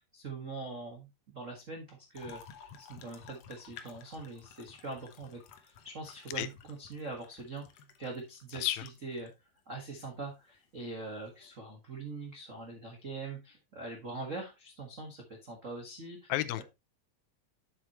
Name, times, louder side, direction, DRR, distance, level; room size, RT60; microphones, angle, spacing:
voice 1, 0.1-2.4 2.8-7.6 8.0-9.3 9.7-16.3 16.6-16.7, right 3 dB, 60° right, 0.8 m, -43 dB
sound 1, 2.1-9.3 10.0-10.1 11.2-11.5, left 7 dB, 70° left, 1.6 m, -54 dB
voice 2, 16.3-16.6, left 15 dB, 90° left, 2.5 m, -31 dB
7.7 x 7.6 x 3.0 m
omnidirectional pair, 4.0 m